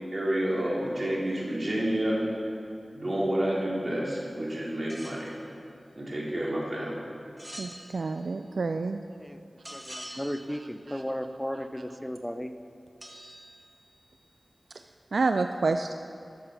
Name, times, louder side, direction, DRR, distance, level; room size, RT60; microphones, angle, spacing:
voice 1, 0.1-2.2 2.9-5.4 6.0-7.0, right 1 dB, 50° right, -5 dB, 2.9 m, -29 dB
sound 1, 4.9-5.3 7.4-8.3 9.6-10.7 13.0-14.1, equal, 25° right, 1.8 m, -45 dB
voice 2, 7.6-9.0 9.7-10.0 10.9-11.0 15.1-15.9, right 3 dB, 85° right, 7 dB, 0.3 m, -29 dB
voice 3, 9.7-12.5, equal, 5° left, 9 dB, 0.6 m, -35 dB
13.0 x 6.6 x 5.9 m, 2.4 s
cardioid pair, 45°, 0 cm